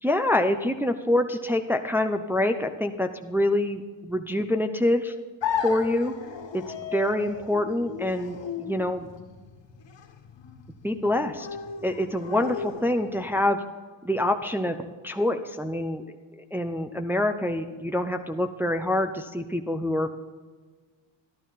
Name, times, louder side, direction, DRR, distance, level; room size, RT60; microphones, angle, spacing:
voice 1, 0.0-5.1 5.6-6.1 6.5-9.1 10.8-11.5 11.8-13.6 14.0-14.8 15.0-16.0 16.4-20.1, left 1 dB, 5° right, 5 dB, 0.6 m, -26 dB
sound 1, 5.4-13.4, left 7 dB, 60° left, 1.6 m, -35 dB
12.5 x 12.0 x 4.1 m, 1.4 s
cardioid pair, 100°, 48 cm